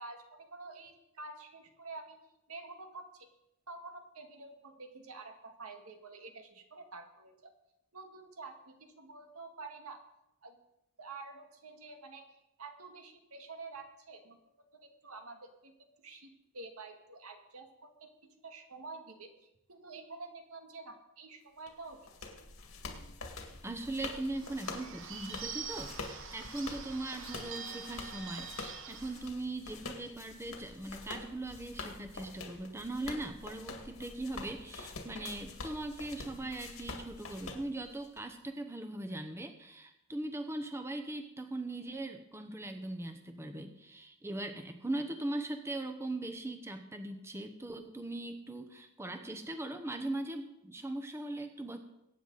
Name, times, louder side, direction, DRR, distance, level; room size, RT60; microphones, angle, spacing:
voice 1, 0.0-2.2 2.5-3.3 3.7-7.5 7.9-10.0 10.4-10.6 11.0-14.4 14.7-15.7 16.0-18.1 18.4-22.3, right 3 dB, 90° right, 4 dB, 2.0 m, -49 dB
sound 1, 21.7-38.2, left 3 dB, 80° left, 2.1 m, -46 dB
voice 2, 23.6-51.8, right 2 dB, 10° right, 7 dB, 0.9 m, -40 dB
Bird / Bell, 24.3-29.3, right 6 dB, 60° right, 1.2 m, -45 dB
22.5 x 9.3 x 4.1 m, 0.85 s
head